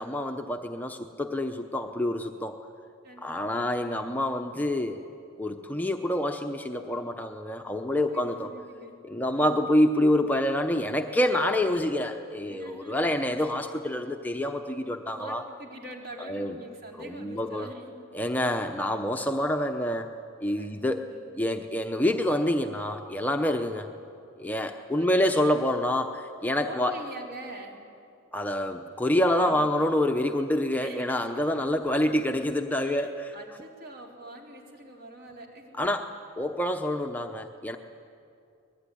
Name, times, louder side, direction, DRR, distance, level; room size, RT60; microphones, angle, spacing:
voice 1, 0.0-2.6 3.2-5.0 5.4-8.5 9.0-15.4 16.3-16.5 17.0-17.7 18.1-20.1 20.4-21.1 21.4-23.9 24.4-26.9 28.3-33.3 35.8-37.8, left 1 dB, 10° left, 4 dB, 0.8 m, -27 dB
voice 2, 3.0-3.9 8.1-9.0 9.3-9.6 12.5-13.1 15.1-18.1 20.6-21.3 25.0-25.7 26.6-27.8 29.4-29.8 30.8-31.2 32.8-35.9, right 1 dB, 50° right, 1 dB, 3.9 m, -44 dB
25.5 x 20.5 x 10.0 m, 2.6 s
head